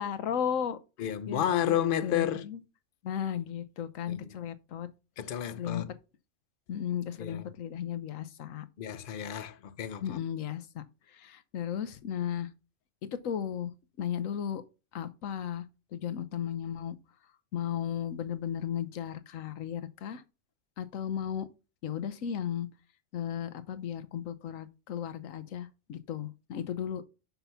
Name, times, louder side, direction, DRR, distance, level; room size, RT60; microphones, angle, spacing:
voice 1, 0.0-1.8 2.0-2.6 3.0-4.9 5.6-5.8 6.7-8.7 10.0-12.5 13.0-13.7 14.0-14.6 14.9-15.6 15.9-17.0 17.5-20.2 20.8-21.5 21.8-22.7 23.1-27.0, left 9 dB, 85° left, 1.2 m, -35 dB
voice 2, 1.0-2.5 4.1-4.3 5.2-5.9 7.2-7.5 8.8-10.2, left 10 dB, 55° left, 0.7 m, -31 dB
5.9 x 5.8 x 5.6 m
omnidirectional pair, 1.3 m